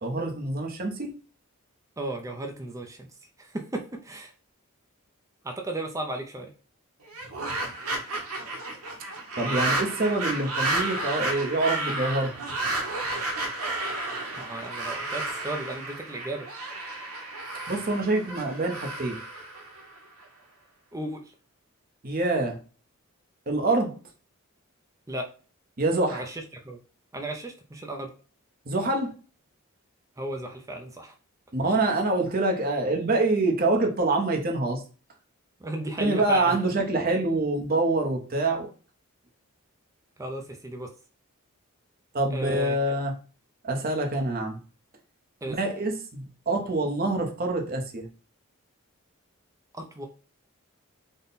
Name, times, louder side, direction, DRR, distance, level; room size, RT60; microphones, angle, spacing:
voice 1, 0.0-1.1 9.4-12.3 17.7-19.2 22.0-22.6 23.5-23.9 25.8-26.2 28.7-29.1 31.5-34.8 36.0-38.7 42.1-43.1 43.6-44.6 45.5-48.1, right 2 dB, 40° right, 2 dB, 0.7 m, -26 dB
voice 2, 2.0-3.1 3.4-4.3 5.4-6.5 14.4-16.5 20.9-21.3 25.1-25.3 26.1-26.8 27.1-28.1 30.2-31.1 35.6-36.6 37.1-37.3 40.2-40.9 42.3-42.9 45.4-45.6 49.8-50.1, right 1 dB, 15° right, 3 dB, 0.4 m, -35 dB
sound 1, 7.1-20.2, right 2 dB, 85° right, 1.0 m, -32 dB
3.7 x 2.1 x 4.0 m, 0.37 s
head